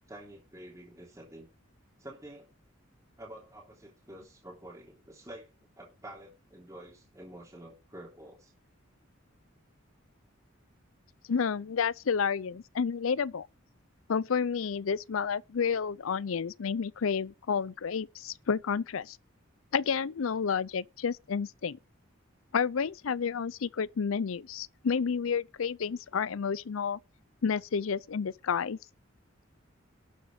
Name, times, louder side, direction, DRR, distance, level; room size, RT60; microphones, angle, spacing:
voice 1, 0.1-1.5 2.0-2.5 3.2-5.5 5.8-8.5 12.5-12.6, right 1 dB, 15° right, 3.3 m, -48 dB
voice 2, 11.3-13.5 14.1-19.2 19.7-21.8 22.5-27.0 27.4-28.8, left 6 dB, 80° left, 0.5 m, -30 dB
12.0 x 7.0 x 6.7 m
head